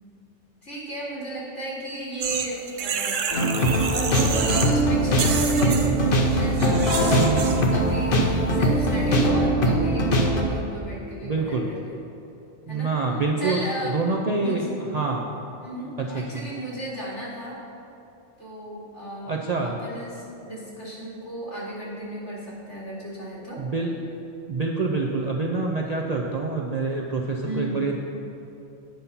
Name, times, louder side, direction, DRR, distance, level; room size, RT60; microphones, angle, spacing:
voice 1, 0.6-3.2 3.9-5.8 6.2-11.9 12.7-13.0 13.4-14.0 14.4-14.7 15.6-17.6 18.4-19.3 19.6-23.6 27.4-27.8, right 1 dB, 70° left, -7 dB, 2.7 m, -34 dB
sound 1, 2.2-4.8 5.1-7.7, right 7 dB, 90° right, 1.0 m, -29 dB
sound 2, 3.3-10.4, right 1 dB, 50° left, 0.9 m, -21 dB
voice 2, 7.1-7.8 11.2-11.7 12.7-14.7 14.9-15.2 16.3-16.5 19.3-19.8 23.6-23.9 24.5-28.0, right 3 dB, 50° right, -1 dB, 0.5 m, -26 dB
9.0 x 5.5 x 5.6 m, 2.8 s
omnidirectional pair, 1.3 m